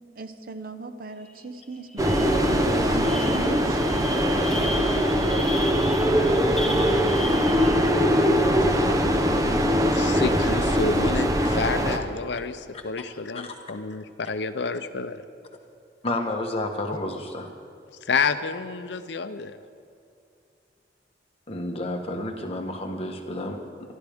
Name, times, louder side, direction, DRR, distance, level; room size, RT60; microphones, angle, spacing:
voice 1, 0.2-4.0, right 2 dB, 50° right, 8 dB, 0.8 m, -38 dB
sound 1, 1.3-1.4 1.7-8.1, left 1 dB, 5° left, 1.2 m, -36 dB
sound 2, 2.0-12.0, equal, 20° right, 0.8 m, -22 dB
voice 2, 9.9-15.2 18.0-19.6, left 4 dB, 75° left, 10 dB, 0.6 m, -29 dB
voice 3, 16.0-17.5 21.5-23.6, left 1 dB, 35° left, 2 dB, 1.3 m, -31 dB
24.0 x 11.5 x 3.6 m, 2.5 s
head